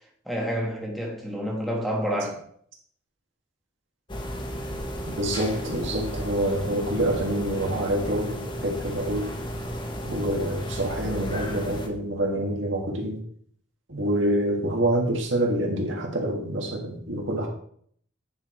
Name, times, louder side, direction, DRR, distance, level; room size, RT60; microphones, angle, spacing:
voice 1, 0.2-2.4, equal, ahead, 1.3 m, -29 dB
sound 1, 4.1-11.9, equal, 25° left, 1.0 m, -34 dB
voice 2, 5.2-9.3 10.0-13.2 13.9-17.5, right 1 dB, 65° right, 1.8 m, -26 dB
9.5 x 4.7 x 4.5 m
head